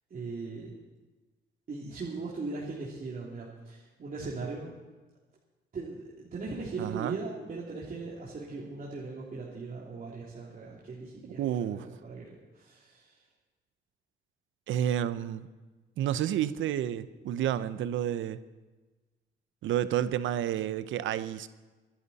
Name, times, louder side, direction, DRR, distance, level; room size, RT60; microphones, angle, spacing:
voice 1, 0.1-0.8 1.7-4.8 5.7-13.2, right 3 dB, 45° right, -5 dB, 3.0 m, -39 dB
voice 2, 6.8-7.2 11.4-11.9 14.7-15.5 16.0-18.4 19.6-21.5, right 11 dB, 80° right, 14 dB, 0.8 m, -30 dB
24.0 x 11.0 x 4.2 m, 1.2 s
cardioid pair, 90°, 20 cm